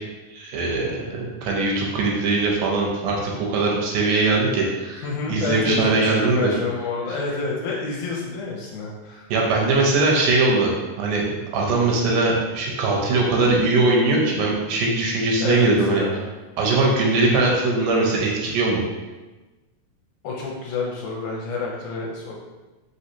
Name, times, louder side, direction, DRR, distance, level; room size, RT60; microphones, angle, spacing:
voice 1, 0.3-6.5 7.1-7.2 9.3-10.7 11.0-16.0 16.6-18.8, right 3 dB, 80° right, -1 dB, 2.1 m, -21 dB
voice 2, 5.0-9.3 15.4-16.3 20.2-22.4, left 3 dB, 75° left, -3 dB, 2.0 m, -28 dB
5.1 x 3.2 x 2.8 m, 1.2 s
omnidirectional pair, 3.8 m